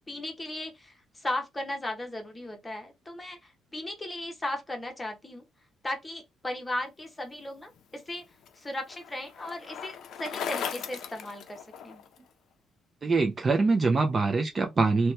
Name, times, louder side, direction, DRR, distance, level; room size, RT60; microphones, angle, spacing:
voice 1, 0.1-5.4 5.8-8.2 8.6-12.0, left 1 dB, 10° left, 0.8 m, -36 dB
Bicycle, 7.8-12.2, left 7 dB, 60° left, 0.5 m, -38 dB
voice 2, 13.0-15.1, right 3 dB, 25° right, 0.3 m, -24 dB
2.9 x 2.1 x 3.2 m
cardioid pair, 170°, 0 cm